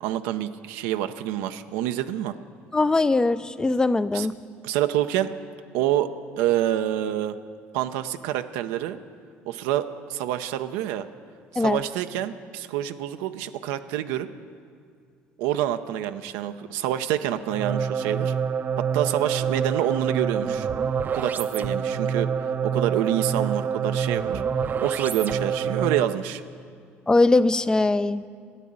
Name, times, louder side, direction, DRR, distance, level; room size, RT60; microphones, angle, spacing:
voice 1, 0.0-2.3 4.1-4.3 4.6-5.3 5.7-7.4 7.7-9.0 9.4-11.1 11.5-14.3 15.4-18.3 18.9-20.7 21.1-24.4 24.8-26.4, right 12 dB, 90° right, 8 dB, 0.6 m, -27 dB
voice 2, 2.7-4.3 11.6-11.8 27.1-28.3, left 2 dB, 15° left, 15 dB, 0.4 m, -21 dB
sound 1, 17.5-26.3, right 6 dB, 40° right, 0.5 m, -26 dB
12.0 x 9.2 x 8.7 m, 2.2 s
cardioid pair, 105°, 5 cm